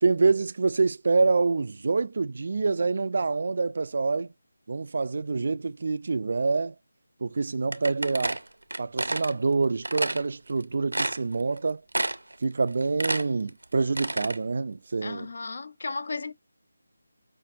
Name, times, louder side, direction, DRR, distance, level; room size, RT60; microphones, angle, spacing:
voice 1, 0.0-4.3 4.7-6.7 7.2-8.4 8.8-11.8 12.4-15.3, right 4 dB, 55° right, 0.3 m, -26 dB
sound 1, 7.7-9.3 9.8-10.2 10.6-10.7 10.9-11.6 11.9-12.4 12.7-14.4, right 2 dB, 90° right, 0.6 m, -29 dB
voice 2, 15.0-16.3, left 3 dB, 55° left, 0.5 m, -34 dB
5.6 x 2.5 x 2.4 m
figure-of-eight pair, 165°, 0 cm